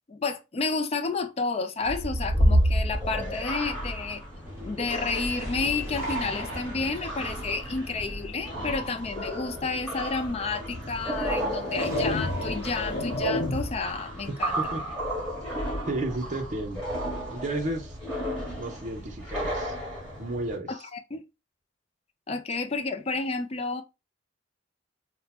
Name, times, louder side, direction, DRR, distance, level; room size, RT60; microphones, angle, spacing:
voice 1, 0.1-4.2 4.6-14.7 20.7-21.2 22.3-23.8, left 4 dB, 35° left, 0.4 m, -31 dB
sound 1, 1.8-20.5, equal, 5° left, 1.5 m, -31 dB
Thunder, 4.4-15.3, equal, 15° right, 1.2 m, -43 dB
sound 2, 10.3-10.4 11.2-13.9, left 1 dB, 85° left, 1.0 m, -30 dB
voice 2, 15.9-16.8 17.3-17.9 18.6-19.7 20.2-20.7, right 2 dB, 40° right, 0.6 m, -32 dB
2.7 x 2.1 x 4.0 m
head